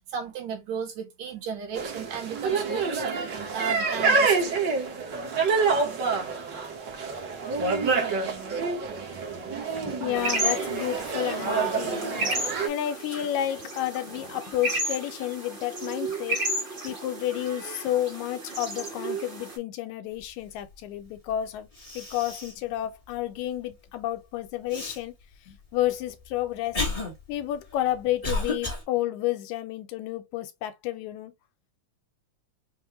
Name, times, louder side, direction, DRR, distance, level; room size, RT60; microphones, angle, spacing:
voice 1, 0.1-4.8, right 7 dB, 75° right, 2.3 m, -35 dB
sound 1, 1.8-12.7, right 4 dB, 55° right, 1.2 m, -27 dB
voice 2, 9.7-12.4 12.6-16.5 16.8-21.7 22.0-25.1 25.5-27.0 27.3-31.3, left 13 dB, 80° left, 2.0 m, -31 dB
sound 2, 10.1-19.6, right 1 dB, 30° right, 1.0 m, -33 dB
Cough, 21.3-21.4 21.7-22.6 23.1-23.2 24.7-25.0 25.8-28.8, left 2 dB, 65° left, 0.3 m, -32 dB
5.3 x 2.2 x 2.9 m
omnidirectional pair, 3.4 m